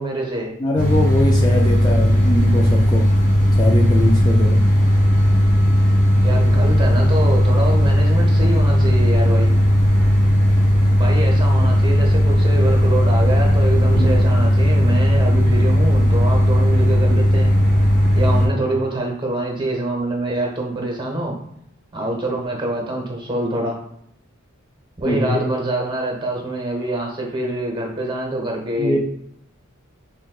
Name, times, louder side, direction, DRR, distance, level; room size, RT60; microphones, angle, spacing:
voice 1, 0.0-0.5 6.1-9.5 11.0-17.5 18.1-21.3 21.9-23.8 25.0-29.0, right 1 dB, 25° right, 1 dB, 0.8 m, -25 dB
voice 2, 0.6-3.1 3.6-4.6 25.0-25.4 28.8-29.0, left 1 dB, 20° left, -1 dB, 0.3 m, -21 dB
sound 1, 0.7-18.5, equal, 35° left, 1.2 m, -16 dB
6.1 x 2.2 x 2.3 m, 0.72 s
head